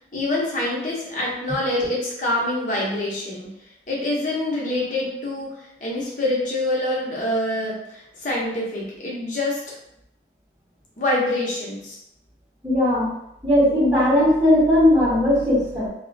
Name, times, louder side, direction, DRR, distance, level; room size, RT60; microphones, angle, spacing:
voice 1, 0.1-3.5 3.9-9.6 11.0-12.0, left 1 dB, 45° left, -4 dB, 0.7 m, -25 dB
voice 2, 12.6-13.1 13.4-15.9, left 1 dB, 5° right, -12 dB, 0.9 m, -18 dB
2.3 x 2.1 x 2.6 m, 0.80 s
head